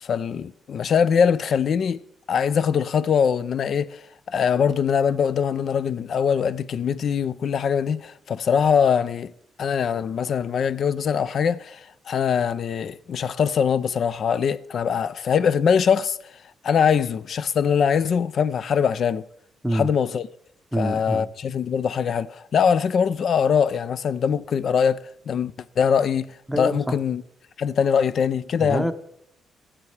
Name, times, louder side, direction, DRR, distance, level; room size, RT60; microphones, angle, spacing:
voice 1, 0.0-9.3 9.6-16.2 16.6-19.3 19.7-20.3 20.7-25.0 25.3-27.2 27.6-28.9, left 7 dB, 55° left, 0.4 m, -22 dB
voice 2, 20.7-21.2 26.5-26.9 28.6-28.9, equal, 5° right, 0.8 m, -25 dB
17.0 x 7.3 x 3.3 m
cardioid pair, 90°, 0 cm